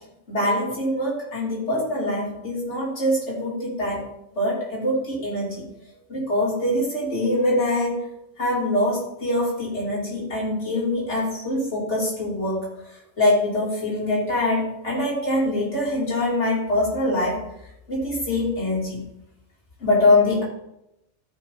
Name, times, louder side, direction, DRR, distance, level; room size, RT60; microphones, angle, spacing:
voice 1, 0.3-4.1 4.3-5.6 6.1-8.0 8.4-12.7 13.2-17.4 17.9-19.0 19.8-20.4, left 1 dB, 75° left, -5 dB, 3.2 m, -23 dB
13.0 x 4.8 x 3.8 m, 0.84 s
omnidirectional pair, 1.2 m